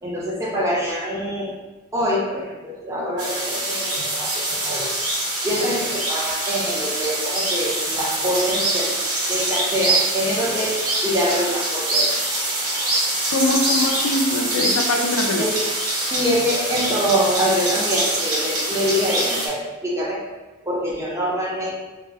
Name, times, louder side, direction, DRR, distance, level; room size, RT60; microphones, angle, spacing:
voice 1, 0.0-1.5 1.9-4.9 5.4-8.9 9.3-10.8 11.0-12.1 15.4-15.6 16.1-21.8, equal, 15° right, -5 dB, 0.7 m, -25 dB
sound 1, 3.2-19.5, right 1 dB, 75° right, 0.9 m, -24 dB
voice 2, 13.3-15.4, left 2 dB, 85° left, 4 dB, 0.4 m, -22 dB
3.5 x 2.1 x 3.3 m, 1.2 s
head